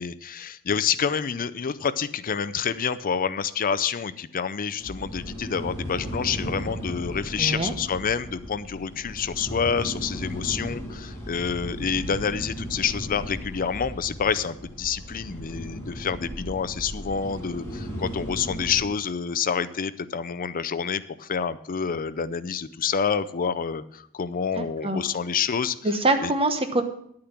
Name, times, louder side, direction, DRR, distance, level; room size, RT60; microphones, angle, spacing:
voice 1, 0.0-25.8 26.2-26.3, left 6 dB, 40° left, 14 dB, 0.5 m, -28 dB
sound 1, 4.8-18.9, equal, 15° left, 3.2 m, -36 dB
voice 2, 7.4-7.7 24.6-25.0 25.8-26.8, right 2 dB, 25° right, 7 dB, 1.1 m, -24 dB
10.5 x 8.7 x 5.9 m, 0.70 s
head